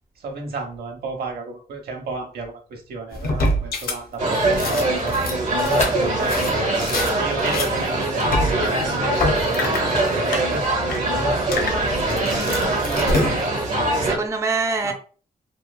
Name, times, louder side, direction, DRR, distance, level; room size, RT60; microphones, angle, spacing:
voice 1, 0.2-6.7 7.1-11.2 12.0-13.5 14.8-14.9, right 3 dB, 85° right, 2 dB, 0.7 m, -33 dB
sound 1, 3.1-4.0 4.3-7.1 7.4-9.9 10.3-10.4 10.7-11.0 11.4-13.7, left 1 dB, 70° left, 0.6 m, -26 dB
sound 2, 4.2-14.2, right 2 dB, 50° right, 0.7 m, -22 dB
sound 3, 5.5-11.5, left 1 dB, 45° left, 0.9 m, -35 dB
voice 2, 12.2-12.7 14.0-14.9, right 3 dB, 20° right, 4 dB, 0.4 m, -25 dB
3.0 x 2.3 x 2.2 m, 0.40 s
wide cardioid pair, 115°, 16 cm